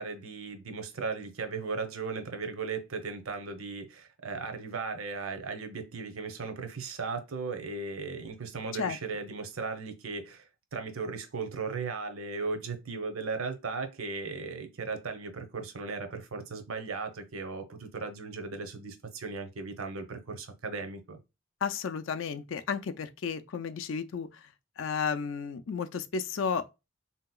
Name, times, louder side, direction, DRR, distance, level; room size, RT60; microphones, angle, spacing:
voice 1, 0.0-21.2, right 4 dB, 85° right, 0.7 m, -37 dB
voice 2, 21.6-24.4 24.8-26.7, left 6 dB, 65° left, 0.4 m, -33 dB
3.6 x 2.8 x 2.2 m
head